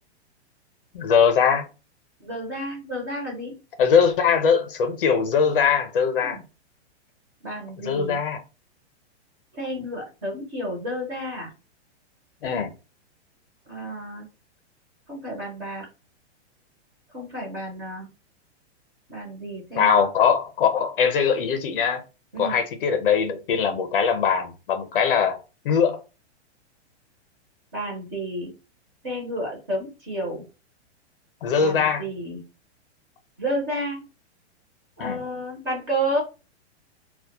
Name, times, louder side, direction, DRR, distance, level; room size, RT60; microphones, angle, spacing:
voice 1, 0.9-1.7 3.8-6.4 7.8-8.4 12.4-12.7 19.8-22.0 22.4-25.4 25.6-26.0 31.4-32.0 35.0-35.2, left 6 dB, 55° left, 0.5 m, -21 dB
voice 2, 2.2-3.6 6.2-6.4 7.4-8.2 9.5-11.5 13.7-14.3 15.1-15.9 17.1-18.1 19.1-20.0 22.3-22.6 27.7-28.5 29.0-30.4 31.6-32.4 33.4-34.1 35.0-36.2, right 1 dB, 20° right, 0.5 m, -31 dB
2.2 x 2.1 x 2.7 m
hypercardioid pair, 175°, 34 cm